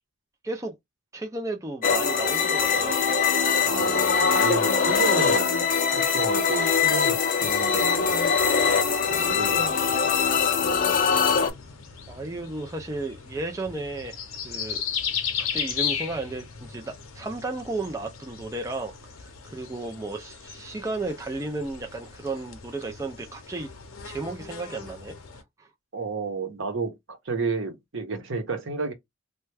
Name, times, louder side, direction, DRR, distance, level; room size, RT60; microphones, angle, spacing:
voice 1, 1.1-3.2 12.1-14.2 14.4-14.8 15.4-23.7 24.0-25.1 25.6-25.7, right 2 dB, 15° right, 0.4 m, -34 dB
sound 1, 1.8-11.5, left 6 dB, 40° left, 0.5 m, -22 dB
voice 2, 3.6-8.3 9.1-10.1 25.9-28.9, right 4 dB, 65° right, 0.8 m, -31 dB
sound 2, 7.4-25.4, left 7 dB, 80° left, 0.7 m, -37 dB
3.2 x 2.2 x 3.2 m
head